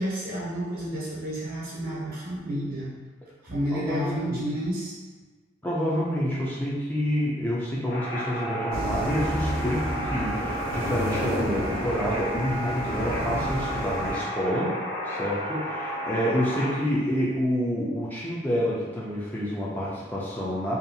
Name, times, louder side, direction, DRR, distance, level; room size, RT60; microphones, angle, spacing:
voice 1, 0.0-2.9 3.4-4.9, equal, 45° right, -6 dB, 0.8 m, -30 dB
voice 2, 3.7-4.4 5.6-14.8 15.0-20.8, equal, 10° left, -7 dB, 0.4 m, -28 dB
sound 1, 7.9-16.7, equal, 60° left, 0.6 m, -32 dB
sound 2, 8.7-14.2, right 1 dB, 80° right, 0.6 m, -31 dB
2.6 x 2.3 x 2.6 m, 1.4 s
head